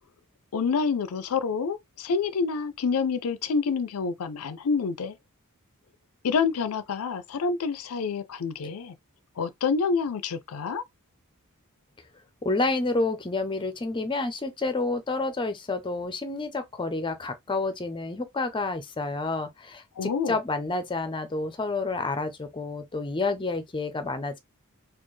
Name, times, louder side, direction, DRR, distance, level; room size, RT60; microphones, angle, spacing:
voice 1, 0.5-5.2 6.2-8.9 9.4-10.8 20.0-20.4, left 5 dB, 75° left, 0.5 m, -27 dB
voice 2, 12.4-24.4, left 3 dB, 20° left, 0.6 m, -29 dB
4.3 x 2.4 x 3.1 m
head